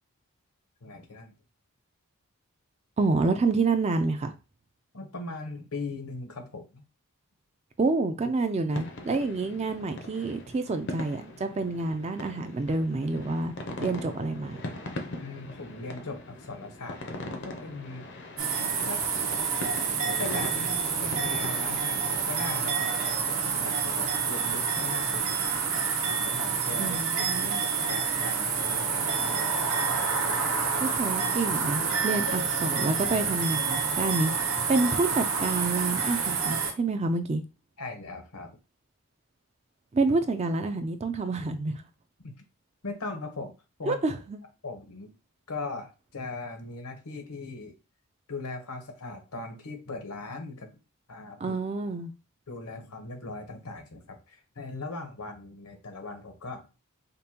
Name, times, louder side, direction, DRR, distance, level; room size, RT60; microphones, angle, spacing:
voice 1, 0.8-1.3 4.9-6.8 15.2-18.0 18.9-19.0 20.1-22.9 23.3-25.5 26.1-27.0 27.4-29.4 30.7-31.0 37.8-38.6 42.2-42.3 42.8-43.5 43.8-44.0 44.6-45.1 45.5-47.7 48.3-50.7 51.1-51.6 52.5-56.7, left 3 dB, 80° left, 0.9 m, -39 dB
voice 2, 3.0-4.3 7.8-13.5 13.8-14.6 26.8-27.7 30.8-34.3 34.7-37.4 39.9-41.8 43.9-44.4 51.4-52.1, right 3 dB, 30° right, 0.4 m, -28 dB
sound 1, 8.7-22.7, left 2 dB, 50° left, 0.6 m, -41 dB
sound 2, 18.4-36.7, right 5 dB, 60° right, 0.8 m, -28 dB
5.1 x 2.2 x 2.8 m
head